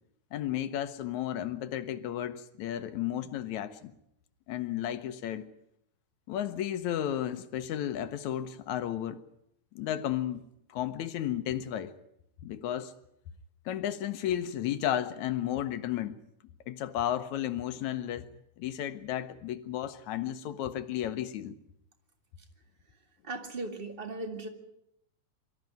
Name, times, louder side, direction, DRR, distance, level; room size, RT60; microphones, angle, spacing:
voice 1, 0.3-3.9 4.5-5.5 6.3-9.2 9.8-10.4 10.7-11.9 12.4-12.9 13.7-16.2 16.7-18.3 18.6-21.6, left 11 dB, 75° left, 2.2 m, -33 dB
voice 2, 23.2-24.5, right 2 dB, 20° right, 1.8 m, -37 dB
24.0 x 13.5 x 9.2 m
omnidirectional pair, 3.5 m